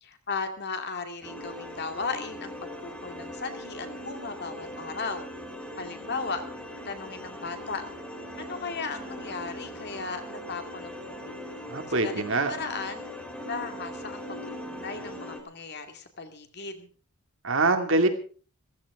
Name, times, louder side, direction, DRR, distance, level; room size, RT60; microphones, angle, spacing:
voice 1, 0.0-2.5 2.8-5.3 5.8-6.4 6.8-7.8 8.4-11.4 11.9-13.0 13.5-16.9, left 4 dB, 50° left, 7 dB, 2.3 m, -36 dB
sound 1, 1.2-15.4, left 1 dB, 5° left, 3.1 m, -40 dB
voice 2, 11.7-12.5 17.4-18.1, right 2 dB, 60° right, 6 dB, 2.3 m, -24 dB
15.0 x 15.0 x 4.9 m, 0.41 s
head